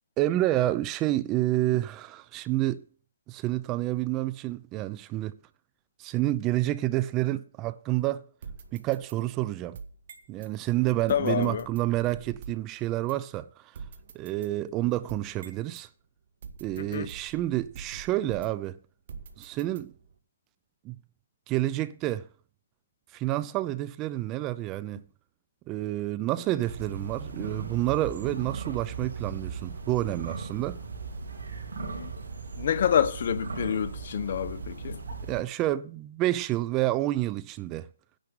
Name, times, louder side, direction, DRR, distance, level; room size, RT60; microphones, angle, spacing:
voice 1, 0.2-2.8 3.3-5.4 6.0-8.2 8.7-9.8 10.3-13.5 14.1-15.9 16.6-18.8 19.4-19.9 20.8-21.0 21.5-22.3 23.1-25.0 25.7-30.8 35.3-37.9, right 15 dB, 20° right, 0.5 m, -29 dB
sound 1, 8.4-10.5 11.1-12.7 13.1-13.2 13.7-15.9 16.4-18.7 19.1-20.2, right 5 dB, 55° right, 1.7 m, -46 dB
voice 2, 11.1-11.7 16.8-17.1 31.8-32.1 32.6-35.0, left 8 dB, 55° left, 0.9 m, -28 dB
sound 2, 26.6-35.4, right 4 dB, 75° right, 3.9 m, -37 dB
10.5 x 6.5 x 7.8 m
hypercardioid pair, 150°, 0 cm